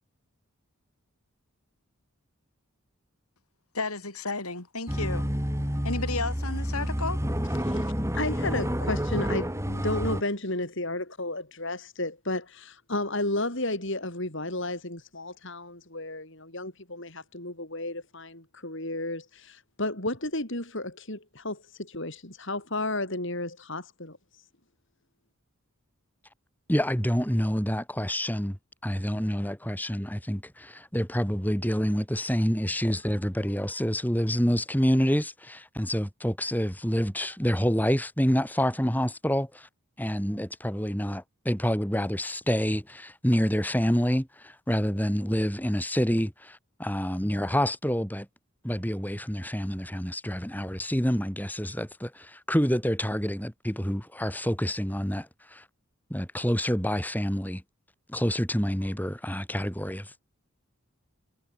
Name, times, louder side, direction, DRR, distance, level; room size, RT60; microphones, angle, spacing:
voice 1, 3.7-5.3 5.8-7.2, left 3 dB, 80° left, 7.9 m, -32 dB
sound 1, 4.9-10.2, equal, 10° right, 7.3 m, -29 dB
voice 2, 7.6-24.4, left 2 dB, 55° left, 5.3 m, -33 dB
voice 3, 26.7-28.6 28.8-39.7 40.0-48.3 48.6-55.6 56.1-57.6 58.1-60.1, equal, 10° left, 7.3 m, -27 dB
head